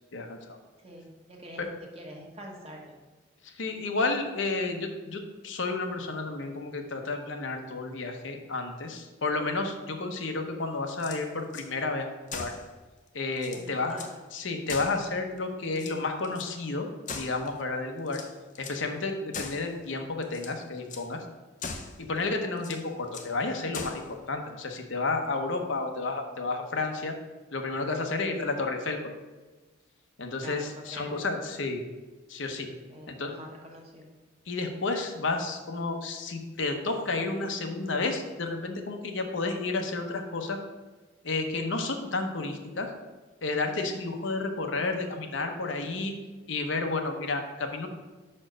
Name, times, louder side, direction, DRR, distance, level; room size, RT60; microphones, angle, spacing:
voice 1, 0.1-0.6 3.4-12.5 13.1-14.0 14.3-16.9 17.1-18.2 18.6-21.2 22.0-24.0 24.3-27.1 27.5-29.1 30.2-31.8 32.3-32.7 33.1-33.3 34.5-40.6 41.2-42.9 43.4-46.1 46.5-47.9, left 3 dB, 70° left, 4 dB, 0.8 m, -31 dB
voice 2, 0.8-1.7 1.9-2.8 13.5-14.2 30.4-31.2 32.9-34.1, equal, 30° right, 0 dB, 1.2 m, -45 dB
sound 1, 10.9-11.7 12.3-12.7 13.1-13.2 13.4-14.2 14.7-15.4 15.7-16.5 17.1-17.6 18.1-18.8 19.3-19.7 20.2-20.6 20.9-21.1 21.6-22.0 22.6-23.3 23.7-24.1, left 4 dB, 40° left, 0.6 m, -40 dB
5.6 x 4.4 x 6.2 m, 1.3 s
head